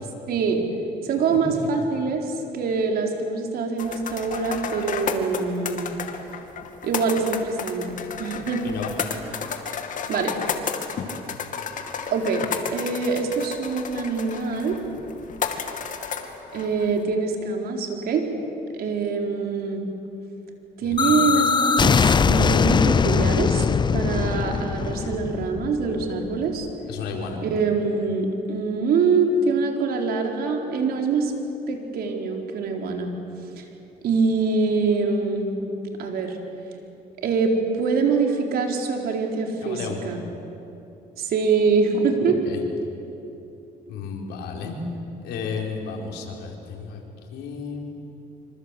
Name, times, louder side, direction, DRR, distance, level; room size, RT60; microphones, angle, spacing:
voice 1, 0.3-0.6 1.0-5.9 6.8-8.6 9.6-9.8 10.1-10.3 12.1-12.4 12.7-14.8 16.5-18.2 18.7-19.9 20.8-23.7 23.9-26.7 27.4-31.3 31.7-33.1 33.6-33.7 34.0-35.5 36.0-36.4 37.2-40.2 41.2-42.4, right 4 dB, 65° right, 2 dB, 4.2 m, -24 dB
sound 1, 3.8-17.0, left 6 dB, 50° left, 2.5 m, -32 dB
voice 2, 20.8-21.2 26.9-27.4 39.6-40.0 42.4-42.6 43.9-44.8 45.2-47.0 47.3-47.8, left 5 dB, 80° left, 0 dB, 5.0 m, -33 dB
sound 2, 21.0-26.7, left 5 dB, 25° left, 0.6 m, -21 dB
26.0 x 26.0 x 8.4 m, 2.9 s
cardioid pair, 110°, 17 cm